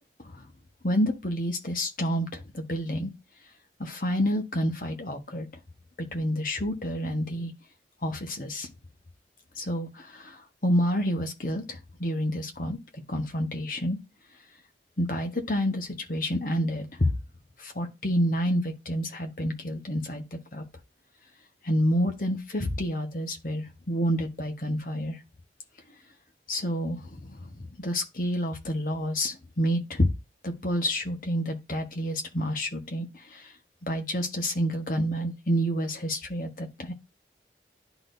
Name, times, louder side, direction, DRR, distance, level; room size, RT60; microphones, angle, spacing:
voice 1, 0.8-3.1 3.8-5.5 6.1-7.5 8.0-8.7 9.6-10.4 10.6-12.8 13.1-14.0 15.0-17.1 17.6-20.2 20.5-20.6 21.6-25.2 26.5-30.1 30.4-33.5 33.8-36.9, equal, 50° left, 1.3 m, -29 dB
11.0 x 4.1 x 2.7 m
head